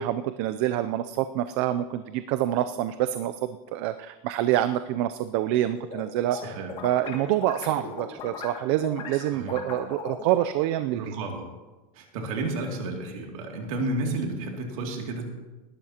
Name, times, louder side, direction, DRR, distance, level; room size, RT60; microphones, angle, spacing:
voice 1, 0.0-6.6 6.8-11.0, right 12 dB, 50° right, 11 dB, 0.4 m, -26 dB
sound 1, 5.5-6.0 6.3-10.5, left 5 dB, 30° left, 2.2 m, -38 dB
voice 2, 6.3-6.7 9.3-9.6 10.9-11.5 11.9-15.3, right 2 dB, 75° right, 1 dB, 2.5 m, -32 dB
19.0 x 12.0 x 2.9 m, 1.2 s
supercardioid pair, 165°, 18 cm